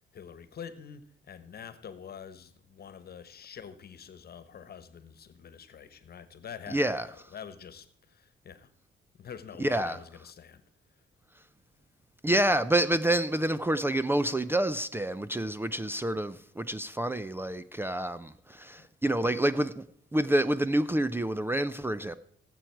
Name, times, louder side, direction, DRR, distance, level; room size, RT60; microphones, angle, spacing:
voice 1, 0.1-8.7 9.2-10.6 18.8-19.3, left 7 dB, 50° left, 1.3 m, -46 dB
voice 2, 6.7-7.1 9.6-10.0 12.2-19.8 20.1-22.1, right 1 dB, 10° right, 0.5 m, -28 dB
18.0 x 7.9 x 4.6 m
cardioid pair, 90°, 20 cm